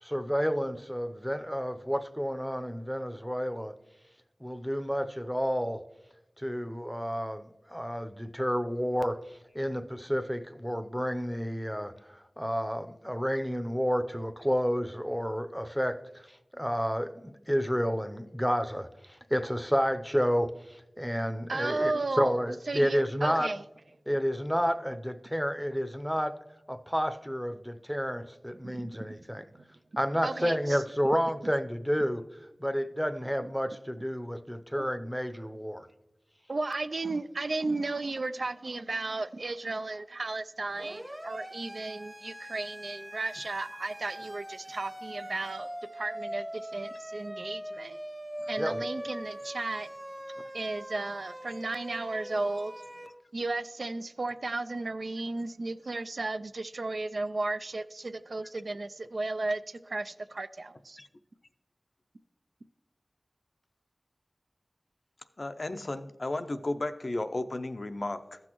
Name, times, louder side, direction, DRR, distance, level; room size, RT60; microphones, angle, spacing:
voice 1, 0.0-3.7 4.4-5.8 6.4-23.5 24.1-26.3 26.7-29.4 30.0-32.2 32.6-35.9 48.6-48.9, equal, ahead, 0.6 m, -30 dB
voice 2, 21.5-23.6 28.6-28.7 29.5-29.7 30.2-30.8 34.7-34.9 36.5-48.0 48.5-49.9 50.5-52.7 53.3-61.0, right 2 dB, 75° right, 0.3 m, -34 dB
Siren, 40.7-53.1, equal, 20° right, 0.9 m, -42 dB
voice 3, 65.4-68.4, left 2 dB, 60° left, 0.4 m, -34 dB
14.5 x 6.2 x 3.0 m
wide cardioid pair, 45°, 0 cm